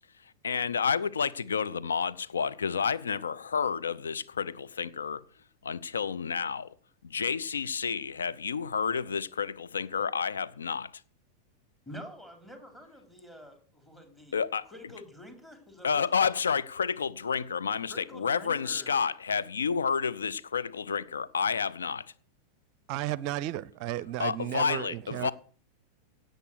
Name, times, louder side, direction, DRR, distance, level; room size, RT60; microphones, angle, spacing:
voice 1, 0.4-5.2 5.6-6.7 7.0-10.9 14.3-14.7 15.8-22.1 24.2-25.3, left 6 dB, 70° left, 0.7 m, -30 dB
voice 2, 11.8-14.4 14.6-16.4 17.9-19.0, equal, 10° left, 3.4 m, -47 dB
voice 3, 22.9-25.3, right 14 dB, 45° right, 0.5 m, -33 dB
17.0 x 8.0 x 6.3 m
figure-of-eight pair, 90°, 0 cm